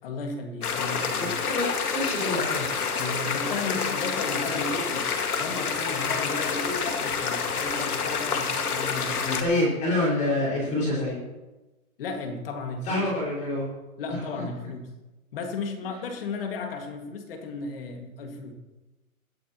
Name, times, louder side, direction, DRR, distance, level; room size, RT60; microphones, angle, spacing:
voice 1, 0.0-1.3 3.0-5.1 5.4-9.2 12.0-13.0 14.0-14.8 15.3-18.5, left 3 dB, 40° left, 4 dB, 2.2 m, -34 dB
sound 1, 0.6-9.4, left 5 dB, 85° left, 2.2 m, -28 dB
voice 2, 1.2-2.8 9.4-11.2 12.8-13.7 14.1-14.4, left 1 dB, 15° left, -4 dB, 5.5 m, -27 dB
21.5 x 11.5 x 3.1 m, 1.1 s
hypercardioid pair, 160°, 43 cm